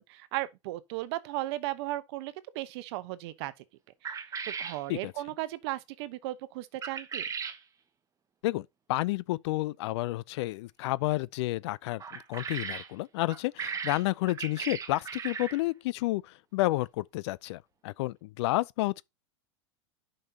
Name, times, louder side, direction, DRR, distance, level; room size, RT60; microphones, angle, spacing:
voice 1, 0.0-3.5 4.0-4.2 4.5-7.3, right 16 dB, 60° right, 1.0 m, -36 dB
sound 1, 4.0-4.8 6.8-7.6 12.0-12.9 13.3-15.6, right 6 dB, 20° right, 1.0 m, -37 dB
voice 2, 8.4-19.0, left 19 dB, 65° left, 0.5 m, -31 dB
10.5 x 5.5 x 2.8 m
hypercardioid pair, 115°, 16 cm